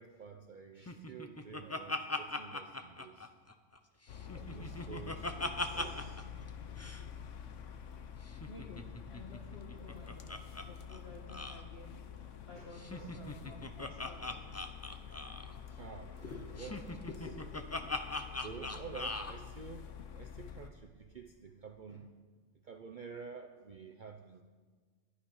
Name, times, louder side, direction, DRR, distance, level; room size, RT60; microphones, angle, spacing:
voice 1, 0.0-3.3 4.3-6.3 12.5-13.3 15.7-17.1 18.3-22.1 22.6-24.4, right 6 dB, 50° right, 4 dB, 0.7 m, -50 dB
Laughter, 0.9-3.8 4.1-6.2 6.5-6.6 6.8-7.0 8.3-10.6 10.9-11.0 11.3-11.6 12.7-15.5 16.6-19.3, left 2 dB, 20° left, 0.5 m, -40 dB
sound 1, 4.1-20.7, left 8 dB, 80° left, 1.1 m, -48 dB
voice 2, 8.5-10.4 10.6-12.0 12.5-14.4 16.2-16.4 17.1-17.4, left 2 dB, 60° left, 0 dB, 1.6 m, -51 dB
12.0 x 11.5 x 5.5 m, 1.5 s
omnidirectional pair, 1.2 m